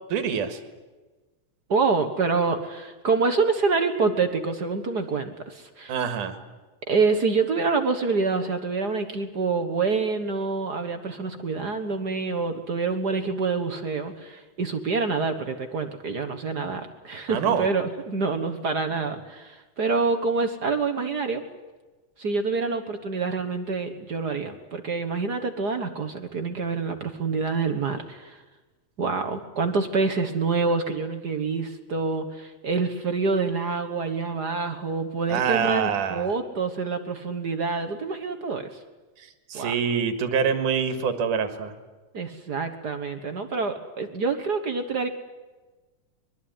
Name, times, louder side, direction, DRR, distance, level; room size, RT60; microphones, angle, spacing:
voice 1, 0.1-0.6 5.9-6.4 17.3-17.7 35.3-36.3 39.2-41.7, right 7 dB, 90° right, 10 dB, 3.3 m, -25 dB
voice 2, 1.7-6.0 6.9-21.4 22.2-28.4 29.0-38.8 39.5-39.7 42.1-45.1, right 4 dB, 50° right, 7 dB, 1.3 m, -26 dB
23.0 x 22.0 x 9.7 m, 1.2 s
omnidirectional pair, 3.5 m